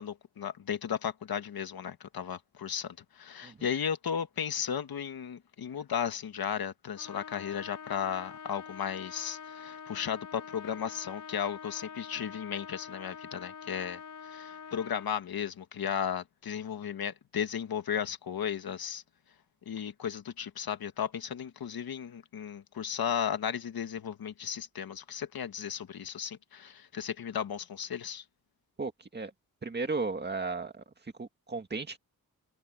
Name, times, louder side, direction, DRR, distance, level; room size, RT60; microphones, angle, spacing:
voice 1, 0.0-19.0 19.6-28.2, left 8 dB, 90° left, 1.6 m, -35 dB
Trumpet, 7.0-15.1, left 7 dB, 60° left, 5.3 m, -45 dB
voice 2, 28.8-29.3 29.6-32.0, right 3 dB, 30° right, 2.1 m, -35 dB
wide cardioid pair, 175°, 35 cm